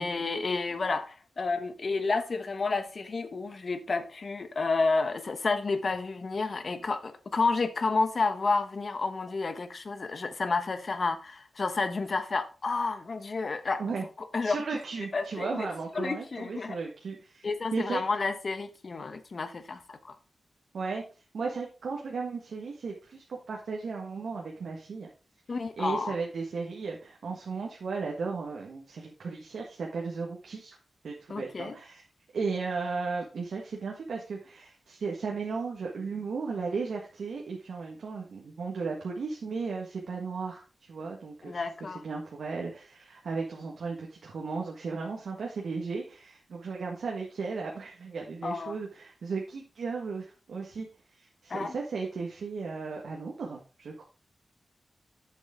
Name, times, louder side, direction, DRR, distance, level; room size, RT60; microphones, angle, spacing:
voice 1, 0.0-13.8 14.2-14.6 15.1-15.7 15.9-16.8 17.4-20.1 25.5-26.1 31.3-31.7 41.4-42.0 48.4-48.8 51.5-51.7, left 3 dB, 50° left, 1.1 m, -30 dB
voice 2, 14.4-17.4 17.7-18.0 20.7-21.0 21.3-25.1 25.8-30.8 31.0-32.0 32.3-50.9 51.2-54.0, right 4 dB, 85° right, 1.5 m, -35 dB
8.3 x 7.2 x 3.7 m
wide cardioid pair, 100°, 0 cm